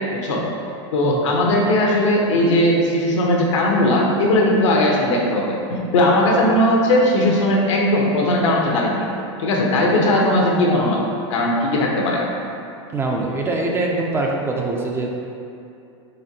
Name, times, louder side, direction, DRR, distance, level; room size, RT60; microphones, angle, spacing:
voice 1, 0.1-0.4 0.9-9.1 9.4-11.0 11.3-12.2, left 1 dB, 80° left, -2 dB, 0.7 m, -18 dB
voice 2, 1.0-1.4 12.9-15.1, right 2 dB, 15° right, -1 dB, 0.3 m, -23 dB
4.2 x 2.8 x 2.7 m, 2.6 s
hypercardioid pair, 120°, 15 cm